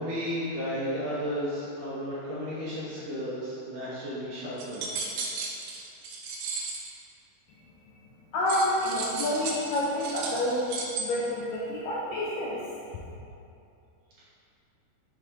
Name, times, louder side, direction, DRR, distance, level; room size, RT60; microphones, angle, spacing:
voice 1, 0.0-4.9, equal, 65° right, -9 dB, 1.6 m, -33 dB
sound 1, 4.6-6.9 8.5-11.0, right 4 dB, 80° right, 2.2 m, -34 dB
voice 2, 8.3-10.6 11.0-12.6, left 1 dB, 75° left, -5 dB, 1.7 m, -28 dB
6.0 x 3.3 x 4.9 m, 2.7 s
omnidirectional pair, 3.7 m